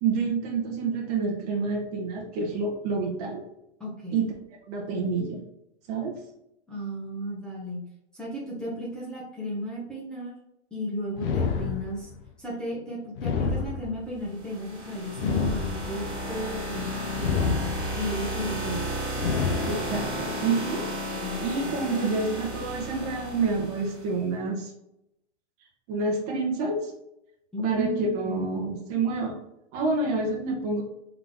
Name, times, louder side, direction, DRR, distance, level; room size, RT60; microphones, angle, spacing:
voice 1, 0.0-3.4 4.1-4.3 4.7-5.4 5.9-6.2 19.7-20.8 21.4-24.7 25.9-26.9 27.6-29.3 29.7-30.8, right 3 dB, 30° right, -1 dB, 1.0 m, -28 dB
voice 2, 3.8-4.2 6.7-7.8 8.1-10.3 10.7-12.1 12.4-17.6 18.0-18.9 19.2-20.1 21.1-21.8 27.5-28.5, equal, ahead, -8 dB, 0.8 m, -34 dB
sound 1, 11.2-12.2 13.1-14.2 15.1-16.2 17.2-18.2 19.1-20.2, left 5 dB, 50° left, 0.8 m, -29 dB
sound 2, 14.3-24.1, equal, 15° right, 1.3 m, -33 dB
3.7 x 3.7 x 3.5 m, 0.82 s
hypercardioid pair, 155°, 36 cm